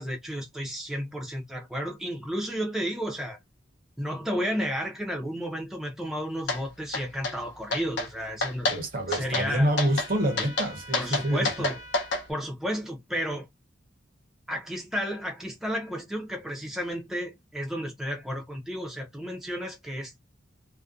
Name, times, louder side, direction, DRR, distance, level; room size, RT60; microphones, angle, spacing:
voice 1, 0.0-3.4 4.0-8.7 9.1-9.8 10.9-11.8 12.3-13.5 14.5-20.2, equal, ahead, 0.5 m, -32 dB
sound 1, 6.5-6.6 6.9-7.4 7.7-8.1 8.4-8.8 9.1-9.5 9.8-10.1 10.4-12.2, left 2 dB, 60° left, 0.7 m, -28 dB
voice 2, 8.7-11.5, right 1 dB, 45° right, 0.7 m, -27 dB
Trumpet, 9.8-12.3, right 1 dB, 30° left, 0.8 m, -46 dB
2.4 x 2.1 x 2.4 m
head